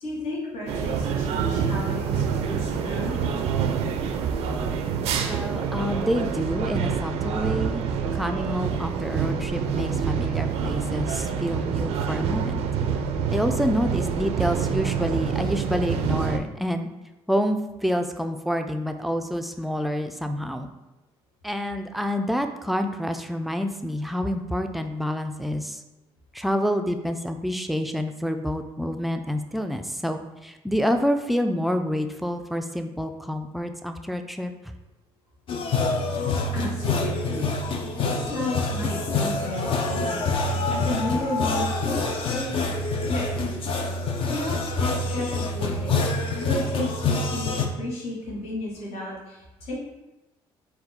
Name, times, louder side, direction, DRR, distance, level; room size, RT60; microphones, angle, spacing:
voice 1, 0.0-3.2 36.2-42.7 43.1-43.3 44.3-49.8, left 1 dB, 75° left, -5 dB, 1.2 m, -33 dB
sound 1, 0.7-16.4, right 7 dB, 80° right, 0.4 m, -26 dB
voice 2, 5.3-7.8 8.1-12.6 13.3-16.9 17.3-20.7 21.4-25.8 26.3-34.5, equal, ahead, 6 dB, 0.3 m, -28 dB
sound 2, 35.5-47.7, left 3 dB, 55° left, 0.5 m, -26 dB
4.2 x 2.3 x 4.0 m, 1.0 s
cardioid pair, 85°, 11 cm